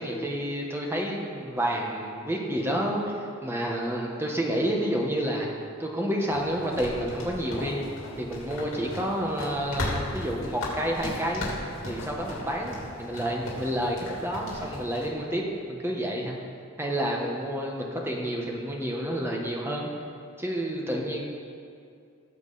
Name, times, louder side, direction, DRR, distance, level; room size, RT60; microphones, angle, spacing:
voice 1, 0.0-3.2 3.4-5.5 5.8-7.8 8.2-11.4 11.8-16.4 16.8-19.9 20.4-21.2, equal, 10° right, -1 dB, 1.4 m, -29 dB
sound 1, 6.3-15.1, left 1 dB, 80° left, 2.9 m, -36 dB
18.0 x 7.3 x 4.2 m, 2.4 s
head